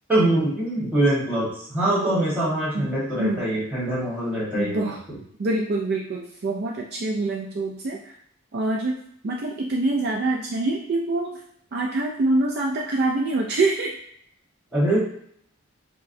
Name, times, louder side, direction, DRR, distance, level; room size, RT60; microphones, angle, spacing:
voice 1, 0.1-5.2 14.7-15.0, right 1 dB, 5° right, -9 dB, 1.3 m, -23 dB
voice 2, 4.5-5.0 5.4-8.0 8.5-9.0 9.2-11.4 11.7-14.0, right 2 dB, 45° right, -1 dB, 0.3 m, -25 dB
4.5 x 2.1 x 2.6 m, 0.66 s
head